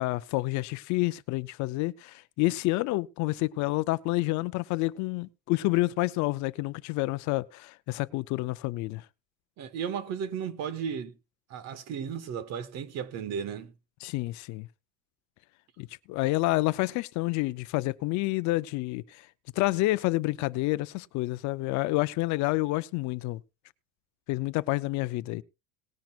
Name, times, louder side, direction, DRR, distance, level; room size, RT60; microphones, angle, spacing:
voice 1, 0.0-9.0 14.0-14.7 15.8-19.3 19.6-23.4 24.3-25.4, left 20 dB, 55° left, 0.5 m, -29 dB
voice 2, 9.6-11.1 11.5-13.7, right 7 dB, 50° right, 1.4 m, -34 dB
19.0 x 10.5 x 2.4 m
cardioid pair, 155°, 34 cm